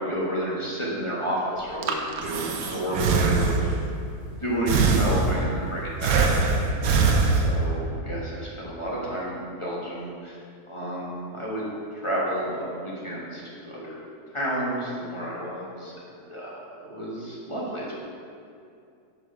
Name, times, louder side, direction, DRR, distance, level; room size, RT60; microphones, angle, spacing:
voice 1, 0.0-3.8 4.4-6.2 6.7-10.4 10.7-11.6 11.9-14.0 14.3-18.0, equal, 20° left, -6 dB, 1.2 m, -31 dB
Breathing, 1.6-3.9 4.7-5.6 6.0-7.8, right 4 dB, 70° right, 1.1 m, -22 dB
5.8 x 5.2 x 5.3 m, 2.5 s
omnidirectional pair, 1.7 m